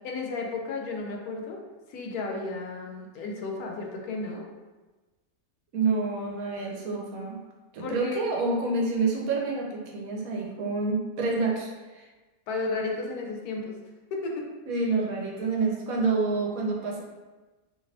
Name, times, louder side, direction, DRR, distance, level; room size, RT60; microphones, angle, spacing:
voice 1, 0.0-1.6 1.9-4.5 7.8-8.2 12.5-13.7 14.1-14.5, left 3 dB, 85° left, 1 dB, 1.1 m, -33 dB
voice 2, 5.7-7.4 7.7-12.1 14.7-17.0, right 3 dB, 75° right, -1 dB, 1.1 m, -28 dB
2.9 x 2.5 x 3.2 m, 1.2 s
omnidirectional pair, 1.5 m